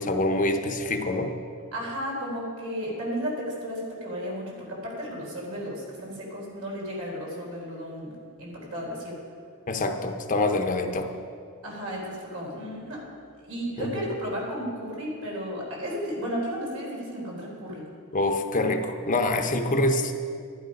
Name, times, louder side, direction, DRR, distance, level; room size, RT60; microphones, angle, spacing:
voice 1, 0.0-1.3 9.7-11.1 13.8-14.1 18.1-20.1, left 2 dB, 40° left, 5 dB, 0.9 m, -25 dB
voice 2, 1.7-8.1 8.4-9.2 11.6-13.0 13.4-17.8, equal, 85° right, -3 dB, 3.9 m, -33 dB
12.0 x 11.0 x 5.3 m, 2.2 s
head